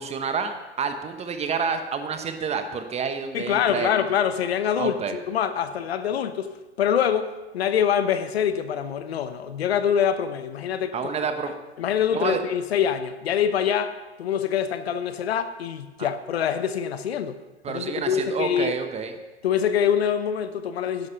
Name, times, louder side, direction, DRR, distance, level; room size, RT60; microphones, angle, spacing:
voice 1, 0.0-3.9 4.8-5.2 10.9-11.5 12.1-12.4 16.0-16.1 17.6-19.1, right 5 dB, 20° right, 8 dB, 1.1 m, -29 dB
voice 2, 3.3-6.5 6.8-11.1 11.8-17.4 17.7-18.7 19.4-21.1, left 8 dB, 65° left, 11 dB, 1.1 m, -25 dB
12.0 x 10.5 x 5.8 m, 1.1 s
figure-of-eight pair, 105°, 34 cm